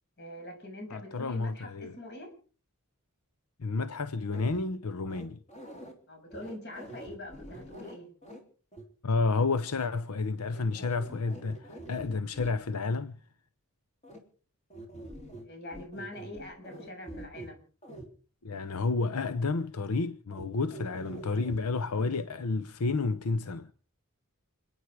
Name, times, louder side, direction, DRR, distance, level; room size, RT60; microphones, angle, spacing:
voice 1, 0.2-2.3 6.1-8.1 15.4-17.6, left 1 dB, 50° left, 6.8 m, -44 dB
voice 2, 0.9-1.9 3.6-5.4 9.0-13.2 18.4-23.7, left 3 dB, 85° left, 0.8 m, -30 dB
sound 1, 4.3-4.6 5.1-5.9 6.3-8.4 8.7-8.8 10.5-12.5 14.0-14.2 14.7-15.5 15.7-17.5 17.8-18.1 20.3-20.4 20.7-21.6 21.9-22.2, right 1 dB, 30° left, 3.4 m, -45 dB
29.0 x 9.9 x 4.9 m
head